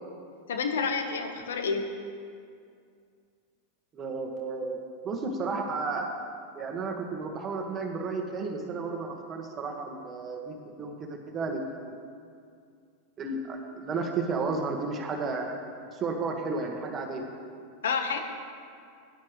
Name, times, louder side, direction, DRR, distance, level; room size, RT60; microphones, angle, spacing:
voice 1, 0.5-1.9 17.8-18.2, left 5 dB, 85° left, 5 dB, 1.3 m, -29 dB
voice 2, 3.9-4.8 5.0-6.1 6.5-12.0 13.2-15.6 15.9-17.2, right 4 dB, 30° right, 2 dB, 1.7 m, -33 dB
16.5 x 10.5 x 3.2 m, 2.3 s
hypercardioid pair, 110°, 0 cm